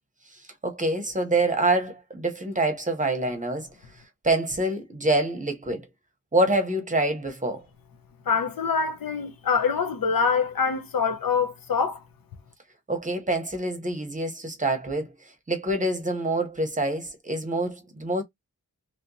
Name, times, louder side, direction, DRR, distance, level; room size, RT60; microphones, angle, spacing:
voice 1, 0.6-3.7 4.2-5.8 6.3-7.6 12.9-15.1 15.5-18.2, right 2 dB, 20° right, 0.8 m, -26 dB
voice 2, 8.3-12.0, left 5 dB, 80° left, 0.8 m, -25 dB
3.0 x 2.8 x 2.6 m
wide cardioid pair, 115°, 34 cm